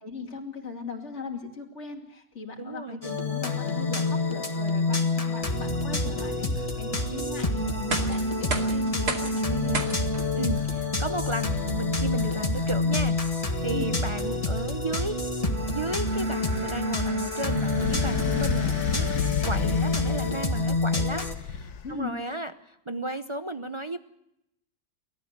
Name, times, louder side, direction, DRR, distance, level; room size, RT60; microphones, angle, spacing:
voice 1, 0.0-9.8 13.7-13.9 21.8-22.2, left 5 dB, 45° left, 2 dB, 3.0 m, -38 dB
voice 2, 2.6-3.0 9.5-9.8 10.3-15.2 15.7-24.0, right 2 dB, 30° right, 8 dB, 0.5 m, -34 dB
sound 1, 3.0-21.3, left 2 dB, 20° left, 1.8 m, -27 dB
sound 2, 7.7-19.6, right 2 dB, 75° right, 3.1 m, -39 dB
sound 3, 17.5-20.5 21.1-22.0, left 7 dB, 75° left, 1.5 m, -31 dB
29.5 x 14.0 x 6.6 m, 0.81 s
omnidirectional pair, 1.7 m